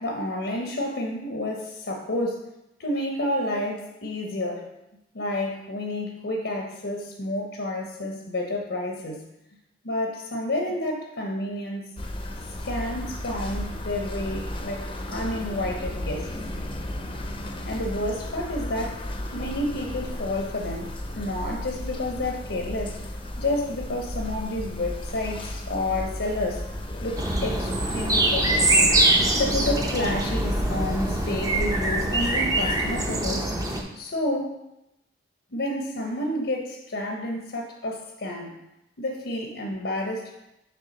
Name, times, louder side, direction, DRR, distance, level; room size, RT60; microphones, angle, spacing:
voice 1, 0.0-2.5 2.8-4.7 5.1-9.2 9.8-11.9 12.6-16.3 17.6-23.0 23.4-26.7 27.0-28.9 29.3-33.5 33.9-34.5 35.5-38.5 39.0-40.3, left 1 dB, 70° left, 1 dB, 0.8 m, -30 dB
sound 1, 12.0-31.6, left 1 dB, 30° left, 0.6 m, -34 dB
sound 2, 27.2-33.8, right 2 dB, 20° right, 0.7 m, -23 dB
6.7 x 3.4 x 5.3 m, 0.89 s
head